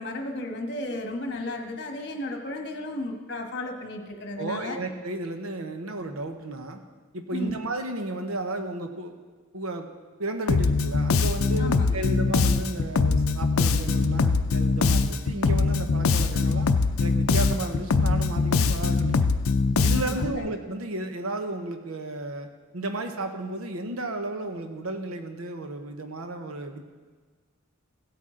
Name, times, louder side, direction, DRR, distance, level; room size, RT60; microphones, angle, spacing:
voice 1, 0.0-4.8 7.3-7.6 11.6-12.1 19.9-20.4, left 1 dB, 55° left, 4 dB, 1.4 m, -34 dB
voice 2, 4.4-6.8 7.1-9.1 9.5-9.9 10.2-16.7 17.0-19.3 19.8-22.5 22.7-26.8, right 2 dB, 85° right, 6 dB, 0.9 m, -33 dB
Bass guitar, 10.5-20.4, left 4 dB, 80° left, 0.5 m, -22 dB
16.0 x 8.4 x 3.8 m, 1.5 s
head